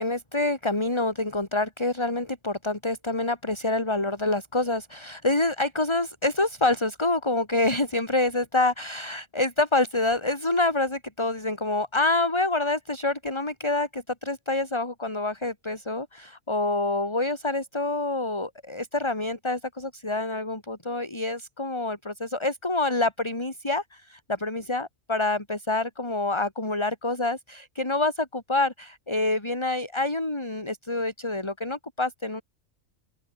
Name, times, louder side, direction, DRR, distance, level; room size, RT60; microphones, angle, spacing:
voice 1, 0.0-32.4, left 2 dB, 20° left, 3.0 m, -27 dB
open air
omnidirectional pair, 1.4 m